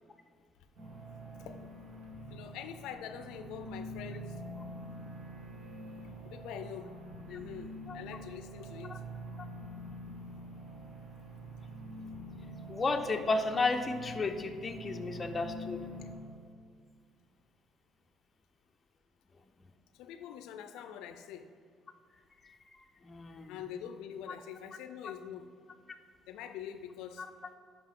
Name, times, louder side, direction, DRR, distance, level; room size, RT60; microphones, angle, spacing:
sound 1, 0.8-16.1, right 1 dB, 65° right, 2.0 m, -46 dB
voice 1, 2.3-4.4 6.2-6.9 7.3-9.0 19.9-21.5 23.5-25.5 26.3-27.3, left 9 dB, 90° left, 9 dB, 0.4 m, -44 dB
voice 2, 12.7-15.8 23.0-23.6 25.0-25.1, left 3 dB, 25° left, 5 dB, 0.6 m, -33 dB
11.5 x 5.2 x 3.7 m, 2.2 s
cardioid pair, 130°, 0 cm